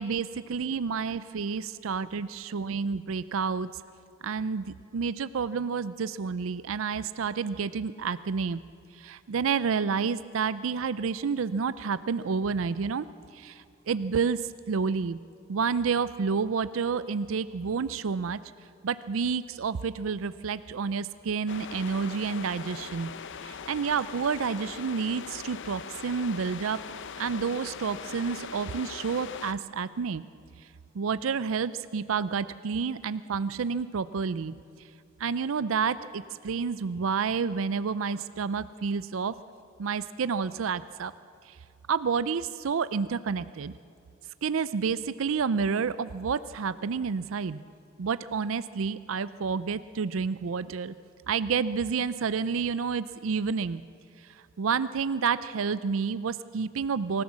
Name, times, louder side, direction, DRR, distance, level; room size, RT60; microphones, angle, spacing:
voice 1, 0.0-3.7 4.2-8.6 8.9-13.1 13.3-15.2 15.5-18.4 18.8-23.1 23.4-26.8 27.2-30.2 30.9-34.6 35.2-39.3 39.8-41.1 41.5-41.6 41.9-43.7 44.4-47.6 48.0-50.9 51.3-53.8 54.2-57.2, right 5 dB, 70° right, 15 dB, 0.5 m, -29 dB
sound 1, 21.5-29.5, left 6 dB, 65° left, 0.7 m, -41 dB
25.0 x 15.0 x 7.3 m, 2.6 s
head